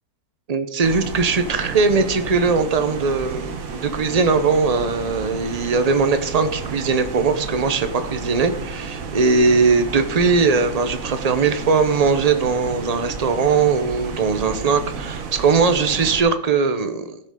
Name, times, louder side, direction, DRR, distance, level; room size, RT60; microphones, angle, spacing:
voice 1, 0.5-3.5 3.7-17.2, right 4 dB, 35° right, 9 dB, 0.6 m, -20 dB
sound 1, 0.8-16.2, right 5 dB, 60° right, 1.4 m, -32 dB
16.0 x 6.7 x 3.7 m, 0.78 s
omnidirectional pair, 1.7 m